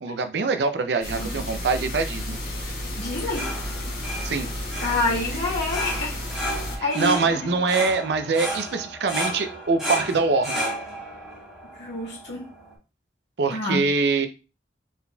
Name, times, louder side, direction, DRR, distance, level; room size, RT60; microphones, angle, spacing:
voice 1, 0.0-2.4 4.2-4.5 6.8-10.6 13.4-14.3, right 4 dB, 75° right, 8 dB, 0.5 m, -24 dB
sound 1, 1.0-6.8, left 1 dB, 55° left, 1.7 m, -32 dB
voice 2, 3.0-3.5 4.8-6.2 6.8-7.6 11.8-12.5 13.5-13.8, left 2 dB, 85° left, -4 dB, 1.9 m, -28 dB
sound 2, 3.0-12.7, equal, 5° right, 1.4 m, -33 dB
4.0 x 3.9 x 2.3 m, 0.31 s
head